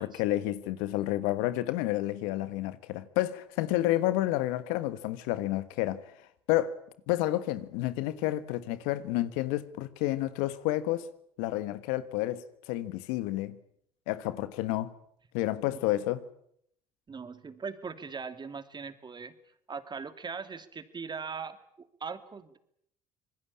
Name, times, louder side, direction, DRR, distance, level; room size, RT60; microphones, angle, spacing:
voice 1, 0.0-6.0 6.5-6.7 7.1-11.1 11.4-13.6 14.1-14.9 15.3-16.2, left 15 dB, 80° left, 1.5 m, -30 dB
voice 2, 17.1-19.3 19.7-22.6, right 5 dB, 30° right, 2.8 m, -40 dB
26.0 x 20.5 x 8.7 m
hypercardioid pair, 70°, 14 cm